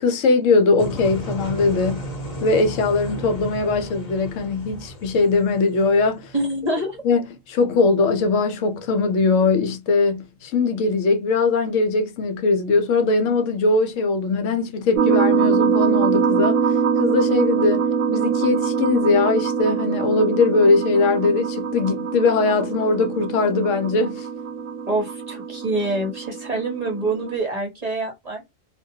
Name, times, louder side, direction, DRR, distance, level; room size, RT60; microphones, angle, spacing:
voice 1, 0.0-2.1 2.4-6.3 7.0-16.6 17.0-24.3, left 3 dB, 75° left, 0.9 m, -20 dB
sound 1, 0.8-6.7, right 1 dB, 35° left, 0.8 m, -34 dB
voice 2, 6.3-7.0 24.9-28.5, right 2 dB, 40° right, 0.7 m, -26 dB
sound 2, 14.9-27.4, right 6 dB, 90° right, 1.0 m, -23 dB
2.3 x 2.2 x 2.7 m
omnidirectional pair, 1.4 m